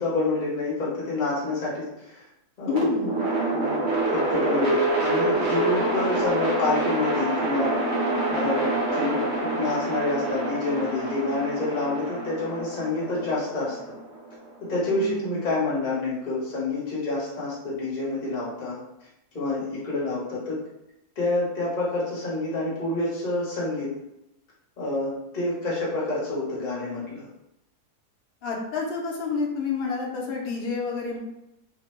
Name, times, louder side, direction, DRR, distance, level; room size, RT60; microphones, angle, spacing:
voice 1, 0.0-2.2 2.6-2.9 3.5-7.7 8.3-13.8 14.7-18.8 19.3-20.6 21.2-23.9 24.8-27.3, left 2 dB, 35° left, -7 dB, 0.9 m, -28 dB
voice 2, 2.7-3.2 14.9-15.4 28.4-31.2, left 4 dB, 80° left, -1 dB, 0.5 m, -29 dB
sound 1, 2.7-14.8, right 2 dB, 55° right, 0.5 m, -27 dB
2.8 x 2.1 x 3.1 m, 0.86 s
omnidirectional pair, 1.7 m